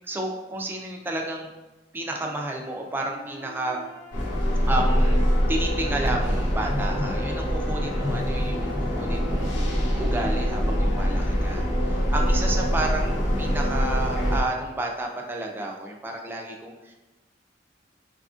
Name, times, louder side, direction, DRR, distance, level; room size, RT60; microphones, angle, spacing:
voice 1, 0.1-1.5 1.9-3.8 4.7-5.2 5.5-9.5 10.0-11.6 12.1-16.9, right 1 dB, 10° right, 0 dB, 0.4 m, -31 dB
sound 1, 2.1-6.2 6.7-10.9, left 2 dB, 10° left, 1.0 m, -42 dB
sound 2, 4.1-14.4, equal, 90° left, 0.8 m, -24 dB
4.9 x 2.5 x 2.4 m, 1.1 s
head